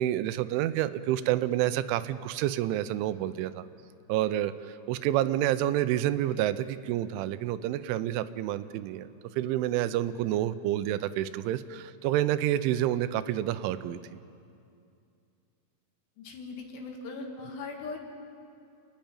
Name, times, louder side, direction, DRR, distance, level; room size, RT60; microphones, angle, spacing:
voice 1, 0.0-3.6 4.1-14.0, right 13 dB, 85° right, 13 dB, 3.1 m, -28 dB
voice 2, 16.2-18.0, left 4 dB, 70° left, 2 dB, 3.8 m, -39 dB
29.5 x 10.5 x 8.8 m, 2.5 s
omnidirectional pair, 5.4 m